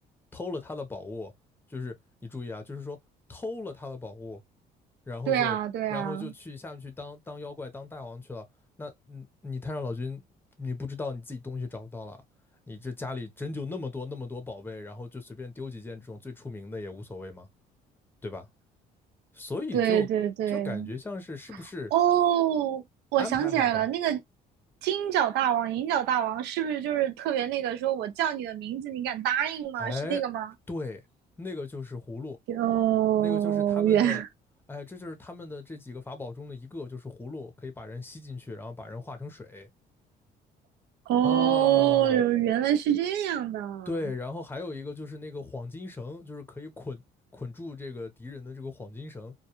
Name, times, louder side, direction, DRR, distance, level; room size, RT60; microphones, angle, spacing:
voice 1, 0.3-1.3 1.7-2.0 2.2-3.0 3.3-4.4 5.1-5.6 5.9-8.5 8.8-10.2 10.6-12.2 12.7-17.5 18.2-18.5 19.3-20.1 20.5-21.9 23.2-23.9 29.8-30.2 30.7-31.0 31.4-32.4 33.2-34.2 34.7-39.7 41.2-42.2 43.9-47.0 47.3-49.3, left 3 dB, 10° left, 0.7 m, -37 dB
voice 2, 5.3-6.3 19.7-20.9 21.9-22.8 23.1-24.2 24.8-30.5 32.5-34.3 41.1-43.9, right 11 dB, 80° right, 0.6 m, -25 dB
2.2 x 2.2 x 2.9 m
cardioid pair, 110°, 17 cm